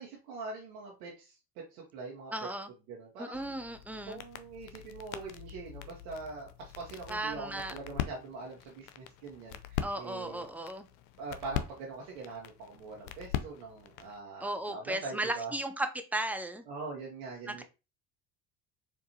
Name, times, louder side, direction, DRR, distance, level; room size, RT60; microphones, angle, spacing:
voice 1, 0.0-2.3 2.9-3.4 4.1-10.5 11.2-15.5 16.7-17.6, right 3 dB, 60° right, 1.0 m, -43 dB
voice 2, 2.3-2.7 3.2-4.2 7.1-7.7 9.8-10.9 14.4-16.6 17.4-17.6, right 1 dB, 5° right, 0.3 m, -35 dB
sound 1, 3.3-14.2, left 10 dB, 60° left, 0.5 m, -42 dB
4.4 x 2.5 x 2.7 m
figure-of-eight pair, 55°, 42 cm